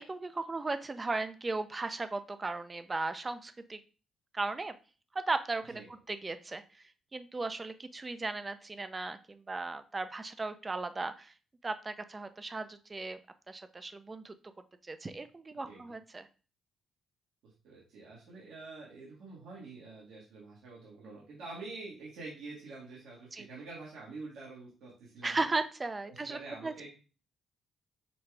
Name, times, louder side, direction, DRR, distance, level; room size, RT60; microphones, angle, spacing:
voice 1, 0.0-3.8 4.3-4.7 5.1-5.8 6.1-11.3 11.6-13.2 13.5-14.3 14.8-16.3 23.3-23.5 25.2-26.9, right 3 dB, 25° right, 10 dB, 0.4 m, -36 dB
voice 2, 17.4-25.5 26.1-26.9, right 3 dB, 80° right, -5 dB, 1.6 m, -47 dB
5.9 x 2.3 x 3.3 m, 0.36 s
cardioid pair, 90°, 0 cm